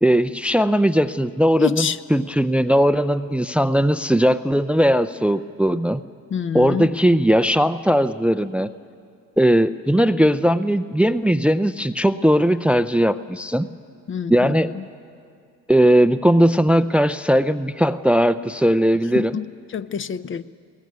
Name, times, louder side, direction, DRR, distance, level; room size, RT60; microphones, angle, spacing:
voice 1, 0.0-6.0 6.5-8.7 9.4-13.7 14.3-14.7 15.7-19.3, equal, 5° right, 12 dB, 0.5 m, -18 dB
voice 2, 1.6-2.0 6.3-6.9 14.1-14.9 19.1-20.4, left 7 dB, 40° left, 13 dB, 0.6 m, -26 dB
21.0 x 17.5 x 9.4 m, 2.3 s
cardioid pair, 90°, 30 cm